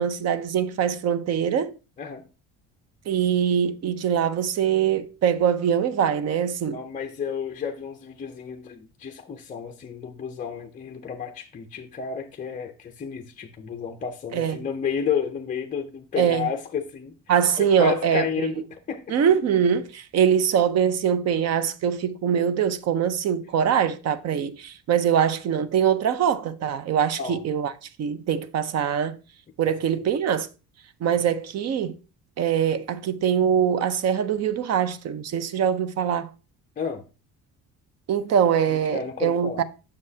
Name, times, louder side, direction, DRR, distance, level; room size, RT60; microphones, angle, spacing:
voice 1, 0.0-1.7 3.1-6.8 14.3-14.6 16.2-16.5 17.3-18.5 19.1-29.2 29.6-30.5 31.0-32.0 32.4-36.3 38.1-39.6, right 8 dB, 45° right, 0.6 m, -23 dB
voice 2, 6.7-17.2 17.8-19.0 27.2-27.4 36.8-37.0 38.7-39.6, left 7 dB, 20° left, 0.5 m, -31 dB
7.5 x 6.5 x 2.7 m
cardioid pair, 140°, 38 cm